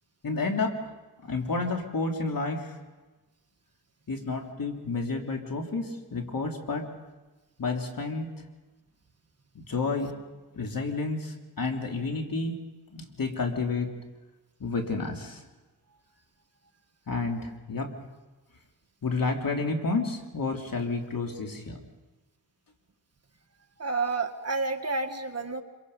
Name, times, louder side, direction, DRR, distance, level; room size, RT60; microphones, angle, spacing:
voice 1, 0.2-0.8 1.2-2.7 4.1-6.9 7.6-8.3 9.5-10.2 10.5-12.6 12.9-13.9 14.6-15.4 17.1-17.9 19.0-21.8, left 3 dB, 65° left, 2 dB, 3.2 m, -30 dB
voice 2, 23.8-25.6, right 3 dB, 40° right, 5 dB, 1.7 m, -30 dB
26.0 x 23.5 x 5.5 m, 1.2 s
cardioid pair, 65°, 37 cm